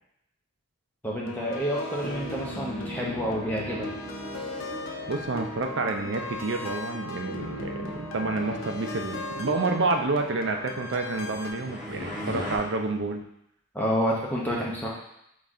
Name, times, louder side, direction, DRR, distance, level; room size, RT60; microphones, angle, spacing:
voice 1, 1.0-3.9 13.7-14.9, equal, 10° left, -4 dB, 0.7 m, -29 dB
sound 1, 1.2-11.5, left 1 dB, 80° left, 0.6 m, -37 dB
sound 2, 2.8-10.0, equal, 20° right, 0.9 m, -43 dB
voice 2, 5.1-13.2, right 3 dB, 60° right, 4 dB, 0.5 m, -29 dB
sound 3, 10.6-12.6, left 1 dB, 40° left, 1.6 m, -37 dB
4.0 x 3.2 x 3.6 m, 0.78 s
head